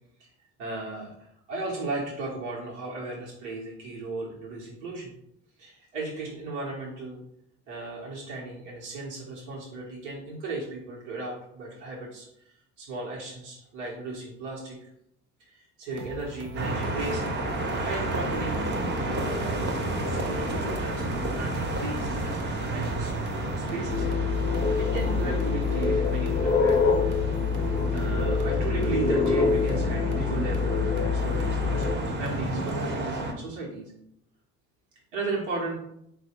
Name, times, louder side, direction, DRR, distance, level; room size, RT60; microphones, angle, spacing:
voice 1, 0.6-5.1 5.6-7.2 7.7-14.9 15.4-17.2 17.9-18.7 19.2-19.8 20.1-24.0 24.8-26.8 27.9-33.9 35.1-35.8, right 3 dB, 85° right, -4 dB, 1.1 m, -36 dB
sound 1, 15.9-32.8, right 2 dB, 60° right, 0.9 m, -42 dB
sound 2, 16.6-33.3, right 1 dB, 30° right, 0.9 m, -31 dB
sound 3, 23.9-32.0, left 5 dB, 25° left, 0.5 m, -25 dB
4.0 x 2.2 x 4.3 m, 0.75 s
supercardioid pair, 85°, 35 cm